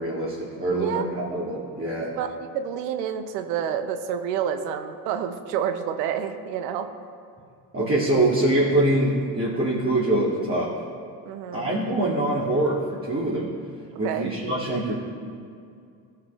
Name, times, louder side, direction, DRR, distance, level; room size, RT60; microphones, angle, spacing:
voice 1, 0.0-2.1 7.7-10.8 11.5-13.5 14.0-14.9, right 1 dB, 25° right, -7 dB, 2.5 m, -24 dB
voice 2, 0.7-1.0 2.1-6.9 11.3-11.7 14.0-14.3, right 8 dB, 85° right, 9 dB, 0.7 m, -29 dB
16.5 x 5.7 x 3.4 m, 2.4 s
hypercardioid pair, 50°, 47 cm